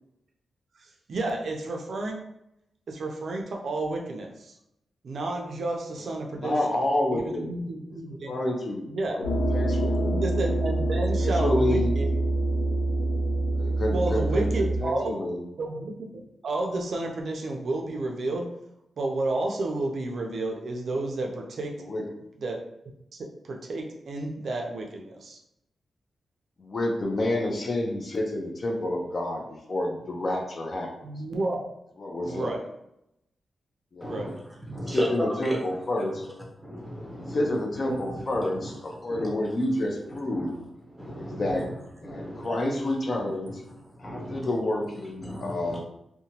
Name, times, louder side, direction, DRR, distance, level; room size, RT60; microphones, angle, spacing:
voice 1, 0.8-2.2 2.9-4.5 5.0-6.8 7.1-8.3 8.9-9.2 10.0-12.1 13.9-15.2 15.6-18.5 19.0-21.8 22.4-22.6 23.1-25.4 31.0-31.6 32.2-32.7 34.0-34.4 37.8-38.0, right 2 dB, 60° right, 2 dB, 0.4 m, -31 dB
voice 2, 6.4-7.5 8.3-9.3 9.5-10.1 11.2-11.9 13.6-15.4 21.9-22.1 26.6-29.4 29.7-30.9 32.0-32.5 33.9-34.1 34.7-36.2 37.1-40.6 41.1-41.7 41.9-43.6 44.0-45.8, left 1 dB, 40° left, 1 dB, 0.5 m, -29 dB
sound 1, 9.2-14.8, right 2 dB, 85° left, 0.7 m, -25 dB
voice 3, 34.0-34.3 34.7-35.6 36.0-36.1 36.6-37.5 38.1-39.3 40.3-40.5 40.9-41.7 42.0-42.5 42.8-42.9 43.2-44.5 45.2-45.8, equal, ahead, -3 dB, 0.7 m, -36 dB
2.8 x 2.1 x 2.8 m, 0.80 s
wide cardioid pair, 145°, 0 cm